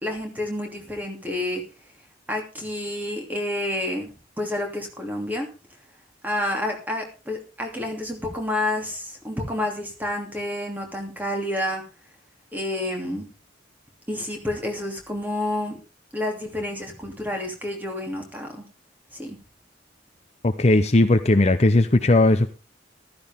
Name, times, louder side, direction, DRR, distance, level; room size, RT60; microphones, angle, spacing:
voice 1, 0.0-1.6 2.3-4.1 4.4-5.5 6.2-11.8 12.5-13.3 14.1-15.8 16.1-18.6 19.1-19.4, left 1 dB, 10° right, 2 dB, 2.9 m, -29 dB
voice 2, 20.4-22.5, left 2 dB, 35° left, 9 dB, 0.7 m, -17 dB
14.5 x 13.0 x 3.6 m, 0.33 s
head